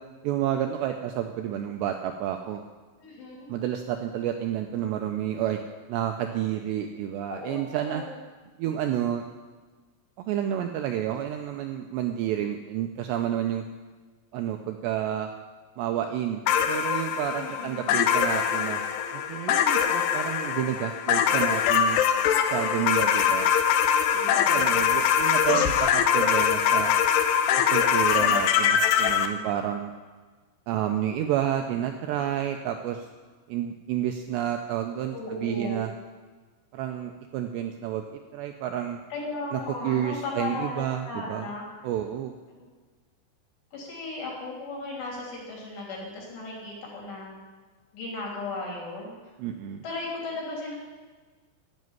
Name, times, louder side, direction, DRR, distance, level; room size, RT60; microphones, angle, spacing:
voice 1, 0.2-2.6 3.5-5.6 5.9-8.0 8.6-9.2 10.2-13.6 14.3-15.3 15.8-18.8 19.1-22.0 22.5-23.5 24.1-27.0 27.7-29.9 30.7-33.1 33.5-35.9 36.7-39.0 39.5-41.5 41.8-42.3 49.4-49.8, right 11 dB, 85° right, 5 dB, 2.5 m, -30 dB
voice 2, 3.0-3.5 7.3-8.1 17.3-17.9 24.3-25.0 28.2-28.3 29.2-29.4 35.1-35.8 39.1-41.7 42.6-42.7 43.7-47.3 47.9-49.1 49.8-50.7, left 3 dB, 65° left, -3 dB, 5.0 m, -36 dB
sound 1, 16.5-29.3, left 8 dB, 80° left, 2.5 m, -23 dB
13.0 x 6.5 x 9.4 m, 1.4 s
omnidirectional pair, 5.6 m